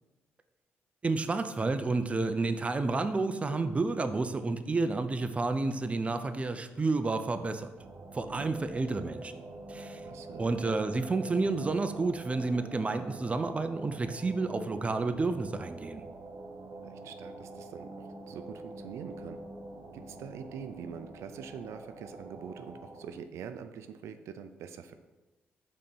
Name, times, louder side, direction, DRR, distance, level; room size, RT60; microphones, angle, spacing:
voice 1, 1.0-7.7 8.1-9.3 9.7-10.0 10.4-16.0, right 3 dB, 25° right, 9 dB, 0.5 m, -30 dB
sound 1, 7.8-23.1, right 2 dB, 50° right, 0.9 m, -46 dB
voice 2, 10.0-10.4 16.8-19.4 19.9-24.9, right 7 dB, 80° right, 9 dB, 0.4 m, -44 dB
5.3 x 4.2 x 5.4 m, 1.1 s
cardioid pair, 75°, 5 cm